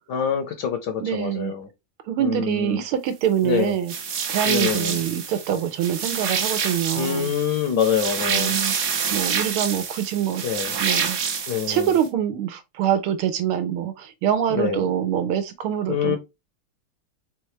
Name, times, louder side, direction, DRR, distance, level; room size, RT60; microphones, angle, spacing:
voice 1, 0.1-1.7 2.2-2.8 3.4-3.7 4.5-5.0 6.9-8.6 10.4-10.7 11.5-12.0 14.5-14.9 15.9-16.2, left 7 dB, 65° left, 1.1 m, -25 dB
voice 2, 1.0-1.5 2.1-3.9 4.3-7.3 8.3-8.7 9.1-10.4 10.8-11.2 11.7-16.2, right 9 dB, 80° right, 1.7 m, -25 dB
sound 1, 3.9-12.1, right 6 dB, 55° right, 1.3 m, -27 dB
4.7 x 3.5 x 3.2 m
omnidirectional pair, 2.4 m